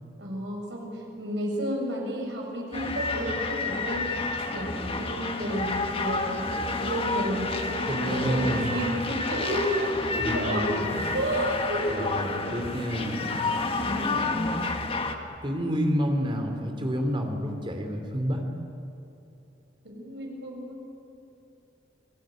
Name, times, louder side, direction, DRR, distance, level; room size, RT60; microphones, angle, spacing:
voice 1, 0.2-4.2 4.4-10.8 11.1-12.1 13.7-14.2 19.8-20.8, equal, 70° right, 0 dB, 6.9 m, -31 dB
sound 1, 2.7-15.2, left 3 dB, 30° left, 1.8 m, -30 dB
voice 2, 7.9-8.7 10.2-11.0 11.9-13.2 15.4-18.4, equal, 30° right, 4 dB, 3.6 m, -29 dB
28.5 x 19.5 x 9.2 m, 2.9 s
head